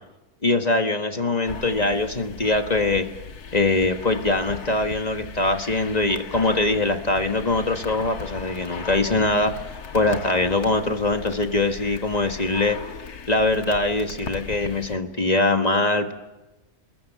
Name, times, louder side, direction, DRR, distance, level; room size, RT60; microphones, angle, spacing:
voice 1, 0.4-3.1 3.5-9.5 9.9-12.8 13.3-16.1, left 2 dB, 25° left, 6 dB, 1.6 m, -22 dB
sound 1, 1.4-15.0, left 5 dB, 80° left, 2.0 m, -38 dB
27.0 x 21.0 x 7.5 m, 1.0 s
omnidirectional pair, 1.6 m